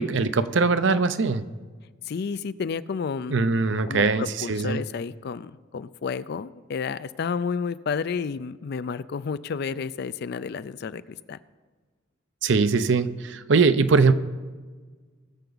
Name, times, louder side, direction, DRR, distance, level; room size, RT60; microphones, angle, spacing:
voice 1, 0.0-1.4 3.3-4.8 12.4-14.1, right 4 dB, 65° right, 12 dB, 0.6 m, -21 dB
voice 2, 2.1-3.4 3.9-11.4, left 5 dB, 55° left, 16 dB, 0.4 m, -31 dB
20.0 x 6.8 x 4.0 m, 1.4 s
head